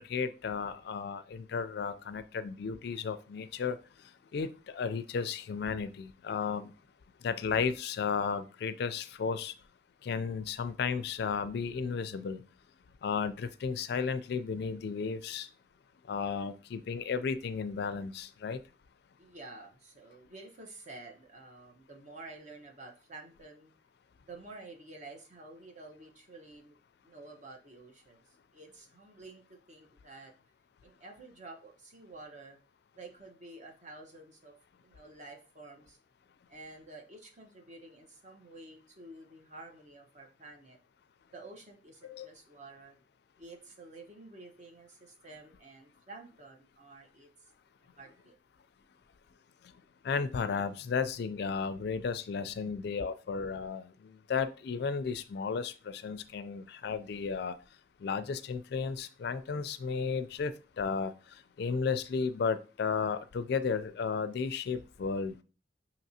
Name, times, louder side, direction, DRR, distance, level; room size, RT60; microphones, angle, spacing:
voice 1, 0.0-3.8 4.3-6.7 7.2-9.5 10.0-12.4 13.0-15.5 16.1-18.6 42.1-42.3 50.0-57.6 58.0-61.1 61.6-65.3, left 5 dB, 65° left, 12 dB, 0.4 m, -34 dB
voice 2, 19.2-23.7 24.2-26.8 27.0-30.3 30.8-32.6 33.0-34.5 34.8-36.0 36.5-40.8 41.3-43.0 43.4-47.5 48.0-48.4 52.6-52.8, right 2 dB, 40° right, 3 dB, 0.9 m, -50 dB
5.8 x 2.9 x 2.7 m, 0.34 s
head